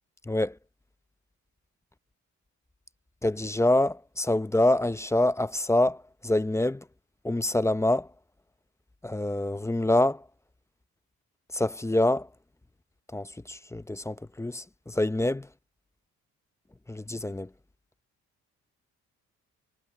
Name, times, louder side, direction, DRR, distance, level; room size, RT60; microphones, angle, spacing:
voice 1, 0.3-0.6 3.2-6.8 7.2-8.1 9.0-10.2 11.5-12.3 13.1-15.5 16.9-17.5, left 1 dB, 10° left, 0.7 m, -26 dB
cardioid pair, 90°, 30 cm